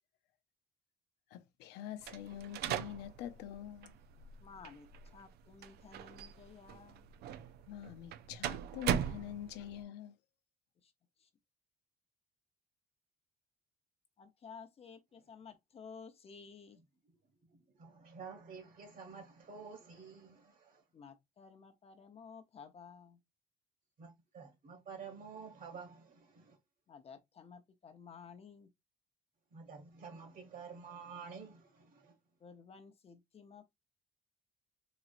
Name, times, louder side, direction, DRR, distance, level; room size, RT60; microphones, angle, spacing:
voice 1, 1.3-3.9 7.7-10.1, left 11 dB, 90° left, 0.6 m, -45 dB
sound 1, 2.0-9.8, right 10 dB, 70° right, 0.5 m, -40 dB
voice 2, 4.4-7.1 10.8-10.9 11.2-11.3 14.2-16.8 20.9-23.2 26.9-28.7 32.4-33.6, left 6 dB, 35° left, 0.7 m, -54 dB
voice 3, 17.5-20.8 24.0-26.6 29.5-32.1, right 5 dB, 55° right, 1.9 m, -50 dB
4.0 x 3.0 x 2.5 m
cardioid pair, 110°, 17 cm